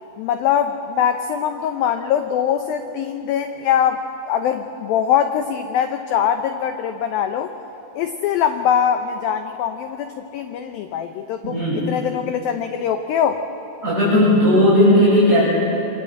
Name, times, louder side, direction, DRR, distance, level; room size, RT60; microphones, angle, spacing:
voice 1, 0.2-7.5 7.9-13.4, left 8 dB, 80° left, 7 dB, 2.2 m, -22 dB
voice 2, 11.4-11.9 13.8-15.4, left 1 dB, 15° right, -8 dB, 6.1 m, -15 dB
28.0 x 24.0 x 7.9 m, 2.9 s
omnidirectional pair, 5.1 m